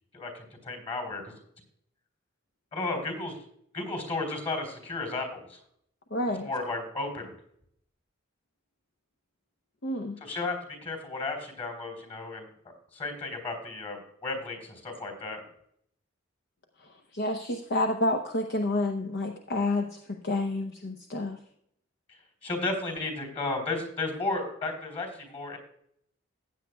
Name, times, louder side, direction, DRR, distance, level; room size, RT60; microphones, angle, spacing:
voice 1, 0.1-1.4 2.7-3.4 3.7-5.6 6.4-7.3 10.2-10.6 10.8-12.5 12.9-15.4 22.4-25.6, left 3 dB, 30° left, 4 dB, 3.5 m, -33 dB
voice 2, 6.1-6.5 9.8-10.2 17.1-21.4, left 2 dB, 55° left, 4 dB, 0.8 m, -29 dB
15.5 x 9.1 x 2.3 m, 0.70 s
head